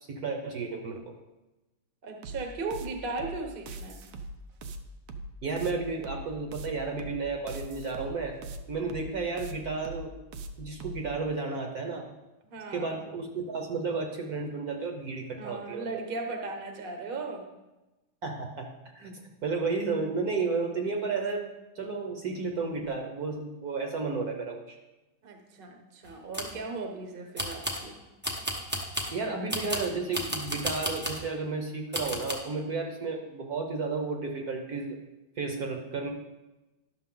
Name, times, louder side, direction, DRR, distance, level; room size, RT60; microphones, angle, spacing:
voice 1, 0.1-1.1 5.4-8.4 8.7-10.1 10.6-12.1 12.7-15.9 18.2-18.7 18.9-21.5 21.8-24.8 29.1-35.0 35.4-36.1, right 4 dB, 60° right, 3 dB, 1.2 m, -32 dB
voice 2, 2.0-4.0 12.4-13.0 15.4-17.4 25.2-28.0, right 3 dB, 40° right, 4 dB, 0.8 m, -37 dB
sound 1, 2.2-11.1, right 2 dB, 90° right, 0.7 m, -41 dB
sound 2, 26.1-26.6 27.4-27.9 28.2-29.2 29.5-31.3 31.9-32.3, equal, 10° right, 0.5 m, -33 dB
11.0 x 6.4 x 3.8 m, 1.1 s
omnidirectional pair, 2.2 m